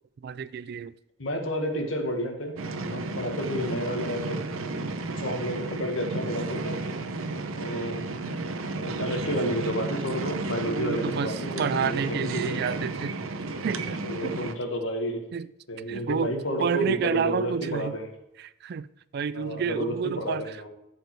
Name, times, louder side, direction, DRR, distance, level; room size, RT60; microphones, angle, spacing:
voice 1, 0.2-1.0 10.6-13.2 13.6-14.3 15.3-15.5 15.9-16.3 16.6-18.0 18.4-18.9 19.1-20.6, right 6 dB, 50° right, 0.3 m, -30 dB
voice 2, 1.2-2.6 2.8-4.4 5.2-6.8 7.6-8.1 8.8-12.8 14.0-15.2 15.7-18.1 19.3-20.7, equal, 70° left, 1.6 m, -31 dB
sound 1, 2.6-14.5, right 3 dB, 85° right, 0.8 m, -33 dB
13.5 x 5.2 x 4.6 m
head